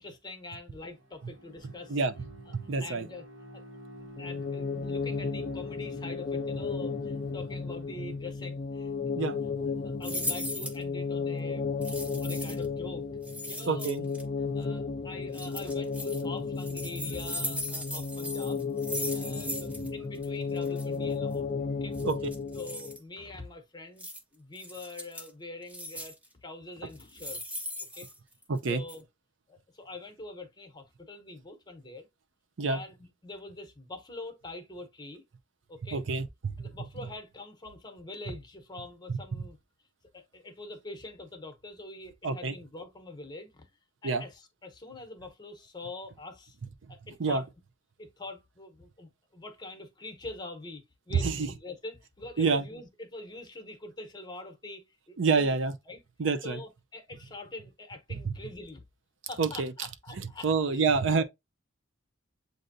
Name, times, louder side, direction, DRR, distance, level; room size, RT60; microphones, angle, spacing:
voice 1, 0.0-2.0 2.8-3.2 3.5-3.6 4.2-9.3 9.6-13.0 13.5-14.1 14.5-18.7 19.1-21.5 21.8-22.0 22.5-24.1 24.3-26.1 26.4-27.6 27.9-28.1 28.7-29.0 29.5-32.1 32.7-32.9 33.2-35.2 35.7-36.0 36.6-39.6 40.1-43.7 44.0-46.6 46.9-47.4 48.0-55.5 55.9-56.0 56.4-58.8 59.3-60.9, left 2 dB, 20° left, 0.9 m, -44 dB
Bowed string instrument, 0.8-8.5, equal, 90° right, 1.4 m, -50 dB
voice 2, 2.5-3.1 9.2-9.4 13.7-14.0 22.0-22.3 28.5-28.8 32.6-32.8 35.9-36.7 39.1-39.2 42.2-42.6 44.0-44.2 47.2-47.4 51.1-51.5 52.4-52.7 55.2-55.7 56.2-56.6 59.4-59.7 60.1-61.2, right 4 dB, 70° right, 0.5 m, -27 dB
sound 1, 4.2-23.0, left 4 dB, 40° left, 0.4 m, -34 dB
sound 2, 10.0-10.8 11.8-12.7 13.2-14.2 15.3-16.2 16.6-19.9 20.1-20.3 20.6-20.8 21.9-23.0 24.0-24.2 24.6-25.3 25.7-26.3 26.9-28.6 28.9-29.0, left 1 dB, 5° right, 0.8 m, -38 dB
7.7 x 2.6 x 2.6 m
head